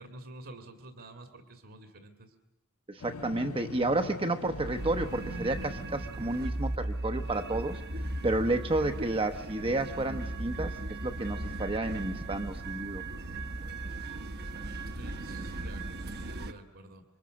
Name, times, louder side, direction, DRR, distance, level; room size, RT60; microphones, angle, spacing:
voice 1, 0.0-2.3 14.9-17.0, right 2 dB, 65° right, 6 dB, 2.2 m, -49 dB
voice 2, 2.9-7.8 8.2-10.7 11.0-13.0, right 2 dB, 25° right, 6 dB, 0.9 m, -31 dB
sound 1, 3.0-7.0, left 3 dB, 80° left, 0.8 m, -44 dB
sound 2, 4.5-16.5, right 2 dB, 50° right, 1.1 m, -37 dB
28.0 x 24.0 x 6.4 m, 1.0 s
head